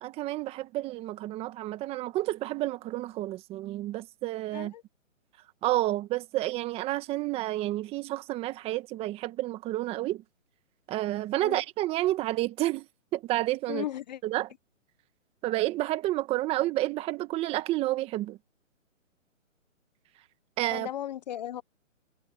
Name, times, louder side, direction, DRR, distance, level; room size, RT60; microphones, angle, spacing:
voice 1, 0.0-4.7 5.6-10.2 10.9-12.9 13.1-13.8 14.2-14.5 15.4-18.4 20.6-20.9, right 16 dB, 15° right, 1.5 m, -30 dB
voice 2, 13.7-14.2 20.7-21.6, left 12 dB, 35° left, 1.0 m, -36 dB
hypercardioid pair, 150°, 39 cm